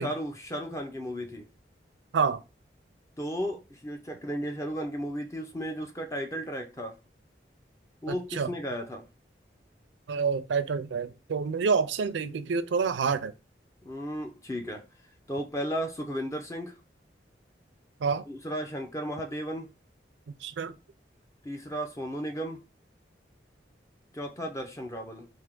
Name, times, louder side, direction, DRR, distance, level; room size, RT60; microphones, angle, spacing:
voice 1, 0.0-1.5 3.2-7.0 8.0-9.1 13.8-14.8 15.3-16.7 18.3-19.7 21.4-22.6 24.1-25.3, equal, 15° left, 0.5 m, -34 dB
voice 2, 8.1-8.5 10.1-13.3 18.0-18.2 20.4-20.7, right 5 dB, 90° right, 0.4 m, -28 dB
3.4 x 2.8 x 3.6 m
head